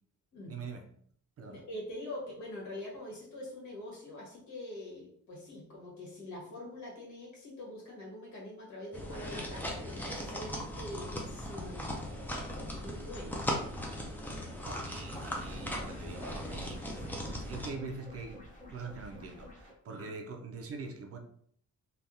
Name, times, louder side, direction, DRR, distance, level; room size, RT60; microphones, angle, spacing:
voice 1, 0.5-0.9 1.4-1.6 14.6-21.2, right 4 dB, 50° right, 4 dB, 0.5 m, -44 dB
voice 2, 1.5-12.2 12.6-13.4 20.0-20.1, left 1 dB, 65° left, -4 dB, 1.5 m, -44 dB
sound 1, 8.9-17.7, equal, 5° left, 0.4 m, -38 dB
sound 2, 15.3-19.7, left 1 dB, 25° left, 0.8 m, -50 dB
3.3 x 2.3 x 2.7 m, 0.62 s
wide cardioid pair, 165°, 31 cm